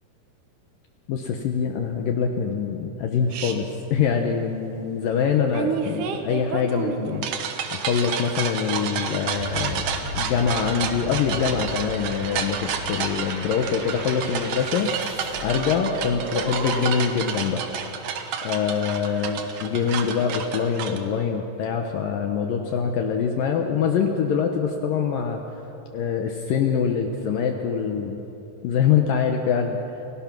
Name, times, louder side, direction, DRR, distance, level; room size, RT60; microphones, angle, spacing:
voice 1, 1.1-7.3 7.7-9.9 10.1-17.7 18.4-25.6 25.9-28.2 28.6-29.8, left 6 dB, 85° left, 3 dB, 2.0 m, -24 dB
sound 1, 3.3-3.5 5.5-21.0, right 7 dB, 80° right, 1.8 m, -30 dB
sound 2, 9.3-17.1, left 1 dB, 35° right, 5.2 m, -35 dB
28.0 x 17.0 x 6.0 m, 2.9 s
omnidirectional pair, 5.5 m